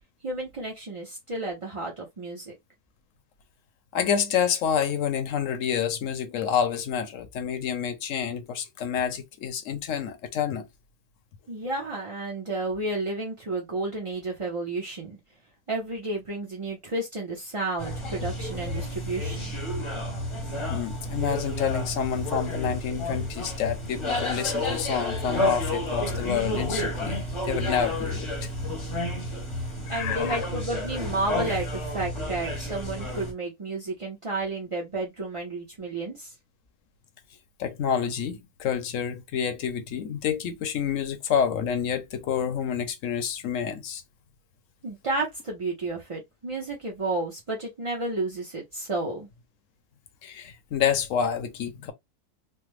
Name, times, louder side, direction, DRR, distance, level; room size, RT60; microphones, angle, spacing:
voice 1, 0.2-2.6 11.5-15.2 15.7-19.5 29.9-36.3 44.8-49.3, right 2 dB, 40° right, 0.4 m, -31 dB
voice 2, 3.9-10.7 20.7-27.2 27.4-28.5 29.9-30.4 37.6-44.0 50.2-51.9, left 8 dB, 65° left, 0.9 m, -28 dB
sound 1, 17.8-33.3, left 1 dB, 25° left, 0.7 m, -31 dB
3.3 x 2.1 x 3.0 m
omnidirectional pair, 1.6 m